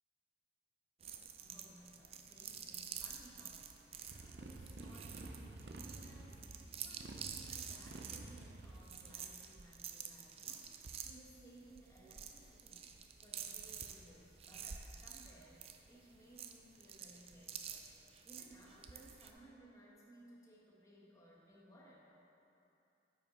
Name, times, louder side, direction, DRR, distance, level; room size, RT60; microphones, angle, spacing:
sound 1, 1.0-19.3, right 7 dB, 35° right, 0.4 m, -50 dB
voice 1, 1.4-6.4 6.8-10.7 11.0-12.8 13.2-17.9 18.2-22.0, right 1 dB, 20° left, -5 dB, 1.3 m, -61 dB
Motorcycle, 4.1-9.2, right 2 dB, 80° right, 0.6 m, -51 dB
9.6 x 5.6 x 4.2 m, 2.9 s
head